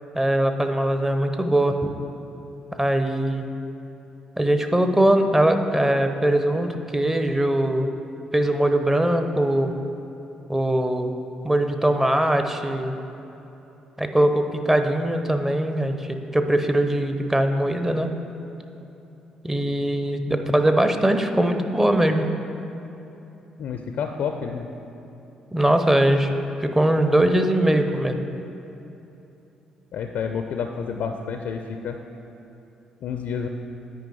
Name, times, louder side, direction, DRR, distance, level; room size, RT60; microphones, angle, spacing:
voice 1, 0.1-1.9 2.8-3.4 4.4-7.9 8.3-9.7 10.5-11.1 11.4-12.9 14.0-18.1 19.4-22.3 25.5-26.3 26.6-28.2, right 1 dB, 10° right, 7 dB, 0.7 m, -21 dB
voice 2, 23.6-24.7 29.9-32.0 33.0-33.5, left 6 dB, 60° left, 5 dB, 0.4 m, -29 dB
9.1 x 5.1 x 4.6 m, 3.0 s
figure-of-eight pair, 45°, 3 cm